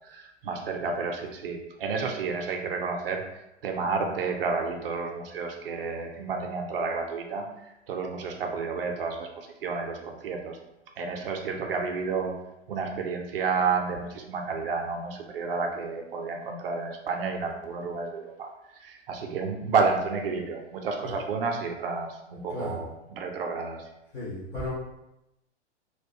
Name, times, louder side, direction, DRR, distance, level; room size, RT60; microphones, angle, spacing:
voice 1, 0.1-3.2 3.6-7.4 7.9-10.6 11.0-12.3 12.7-18.5 18.8-23.8, right 4 dB, 55° right, 2 dB, 0.5 m, -30 dB
voice 2, 22.5-22.8 24.1-24.7, left 2 dB, 10° left, -9 dB, 0.3 m, -34 dB
2.2 x 2.1 x 2.6 m, 0.88 s
figure-of-eight pair, 105°, 36 cm